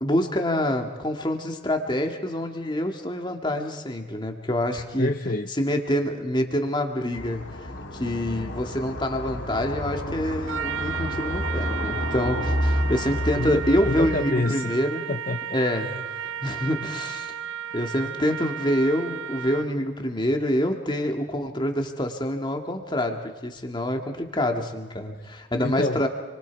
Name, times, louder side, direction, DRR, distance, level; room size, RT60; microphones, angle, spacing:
voice 1, 0.0-5.1 5.6-15.0 15.5-17.3 17.7-26.1, left 1 dB, 20° left, 4 dB, 2.2 m, -26 dB
voice 2, 5.0-5.5 13.3-14.7 15.1-16.0 25.6-26.1, left 2 dB, 40° left, 7 dB, 0.7 m, -28 dB
sound 1, 7.1-14.2, equal, 60° left, 2.7 m, -30 dB
Trumpet, 10.5-19.8, right 9 dB, 65° right, 0.7 m, -34 dB
29.5 x 24.0 x 4.8 m, 1.3 s
head